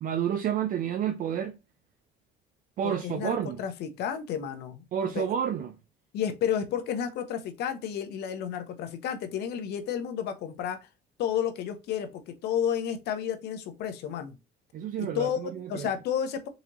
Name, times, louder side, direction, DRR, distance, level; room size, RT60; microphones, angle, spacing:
voice 1, 0.0-1.6 2.8-3.6 4.9-5.7 14.7-15.9, right 9 dB, 55° right, 0.5 m, -30 dB
voice 2, 2.8-4.8 5.1-5.2 6.1-10.8 11.2-14.3 15.0-15.4 15.7-16.5, left 9 dB, 75° left, 0.8 m, -31 dB
4.0 x 2.9 x 2.7 m
cardioid pair, 110°, 17 cm